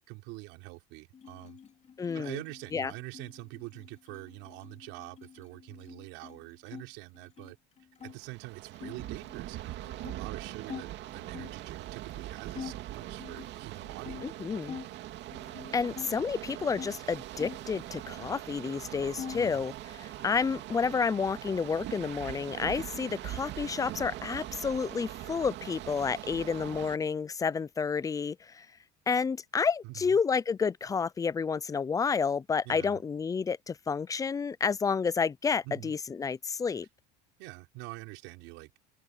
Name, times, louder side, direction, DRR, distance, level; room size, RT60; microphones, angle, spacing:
voice 1, 0.0-1.6 2.1-7.6 8.0-14.3 19.3-19.6 29.8-30.2 32.6-33.0 35.6-35.9 37.4-38.8, right 24 dB, 75° right, 5.6 m, -45 dB
sound 1, 1.1-6.8 7.1-8.2 8.7-11.6 12.1-12.2 12.5-14.9 15.3-16.9 17.3-18.4 18.7-19.6, left 7 dB, 35° left, 2.9 m, -46 dB
voice 2, 2.0-2.4 2.7-2.9 14.2-14.7 15.7-28.7 29.1-36.9, left 5 dB, 15° left, 0.4 m, -30 dB
sound 2, 8.1-27.0, right 14 dB, 60° right, 2.4 m, -42 dB
cardioid pair, 120°, 21 cm